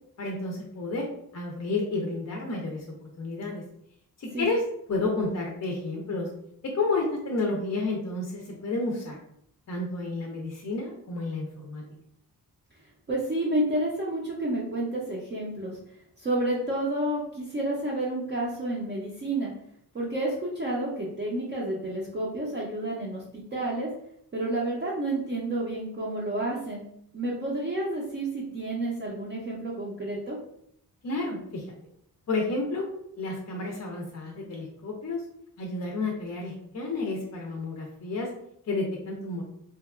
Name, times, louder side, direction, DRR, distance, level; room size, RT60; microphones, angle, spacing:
voice 1, 0.2-1.0 1.3-3.6 4.2-4.6 4.9-6.3 6.7-9.2 9.7-11.8 31.0-31.6 32.3-32.9 33.2-35.2 35.6-38.3 38.7-39.4, left 3 dB, 45° left, 0 dB, 0.4 m, -31 dB
voice 2, 13.1-15.8 16.2-19.5 19.9-23.9 24.3-26.8 27.1-30.4, right 1 dB, 30° right, -5 dB, 0.4 m, -30 dB
2.8 x 2.2 x 2.3 m, 0.72 s
wide cardioid pair, 130°, 38 cm